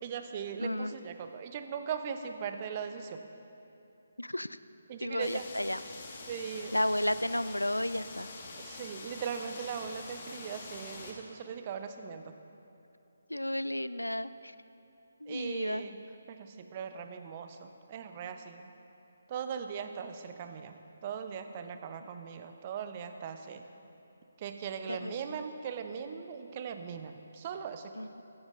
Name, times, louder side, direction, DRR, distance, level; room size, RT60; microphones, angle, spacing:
voice 1, 0.0-3.2 4.9-5.5 6.3-6.7 8.6-12.3 15.3-16.0 16.3-18.6 19.3-20.8 21.0-23.6 24.4-28.0, right 7 dB, 30° right, 8 dB, 0.7 m, -39 dB
voice 2, 0.6-0.9 4.2-4.5 5.0-5.8 6.7-8.3 13.3-14.5 15.2-15.8 24.9-25.4 28.0-28.2, left 1 dB, 90° left, 15 dB, 0.4 m, -33 dB
sound 1, 5.2-11.1, left 3 dB, 40° left, 1.6 m, -46 dB
15.5 x 14.5 x 2.5 m, 2.8 s
figure-of-eight pair, 145°, 0 cm